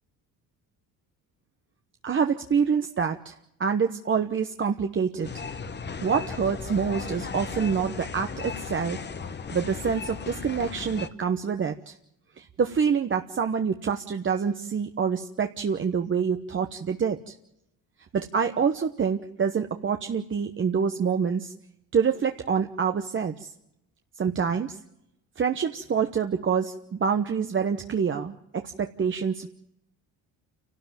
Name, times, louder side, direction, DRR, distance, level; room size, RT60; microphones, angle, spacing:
voice 1, 2.0-5.3 6.0-9.0 9.5-12.0 12.4-17.3 18.1-21.5 21.9-23.5 24.2-24.8 25.4-29.5, right 6 dB, 35° right, 6 dB, 1.1 m, -26 dB
sound 1, 5.2-11.1, left 5 dB, 30° left, 1.2 m, -36 dB
28.5 x 12.5 x 9.1 m, 0.82 s
cardioid pair, 100°, 36 cm